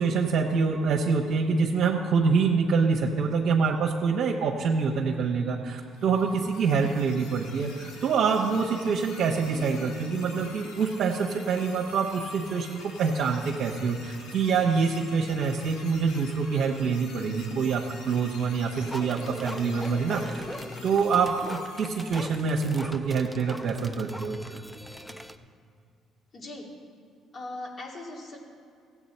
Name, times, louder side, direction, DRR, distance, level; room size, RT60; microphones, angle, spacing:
voice 1, 0.0-20.4 20.8-24.4, right 5 dB, 65° right, -2 dB, 1.0 m, -26 dB
sound 1, 5.9-22.6, left 3 dB, 90° left, 1.6 m, -47 dB
voice 2, 9.5-9.9 26.3-26.7 27.3-28.4, left 2 dB, 45° left, -1 dB, 2.5 m, -39 dB
sound 2, 18.8-25.4, equal, 5° left, 0.6 m, -40 dB
15.5 x 8.5 x 4.3 m, 2.4 s
supercardioid pair, 75°, 0 cm